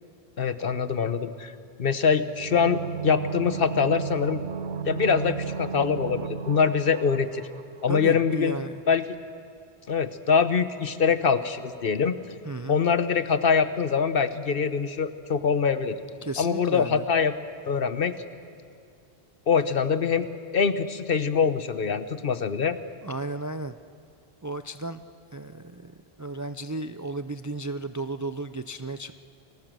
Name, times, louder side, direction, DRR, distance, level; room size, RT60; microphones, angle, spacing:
voice 1, 0.4-1.5 1.8-4.4 4.9-7.5 7.8-8.5 8.9-9.0 9.9-12.1 12.7-16.0 16.4-17.3 17.6-18.2 19.5-20.3 20.5-22.8, left 6 dB, 60° left, 12 dB, 1.1 m, -24 dB
sound 1, 2.3-8.0 8.3-8.4, right 7 dB, 80° right, 1.1 m, -34 dB
voice 2, 7.9-8.8 12.4-12.8 16.2-17.1 23.0-23.8 24.4-25.0 25.3-29.1, right 2 dB, 25° right, 10 dB, 0.4 m, -34 dB
29.5 x 20.0 x 7.6 m, 2.3 s
omnidirectional pair, 1.1 m